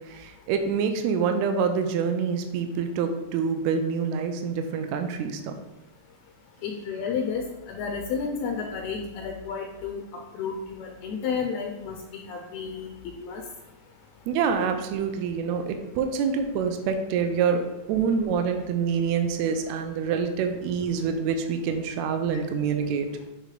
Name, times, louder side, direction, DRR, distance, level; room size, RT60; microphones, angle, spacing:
voice 1, 0.1-5.6 14.3-23.1, right 6 dB, 80° right, 6 dB, 1.8 m, -26 dB
voice 2, 6.6-10.0 10.3-13.4 22.3-22.4, left 5 dB, 75° left, 2 dB, 1.7 m, -32 dB
8.0 x 3.3 x 3.8 m, 1.0 s
omnidirectional pair, 3.4 m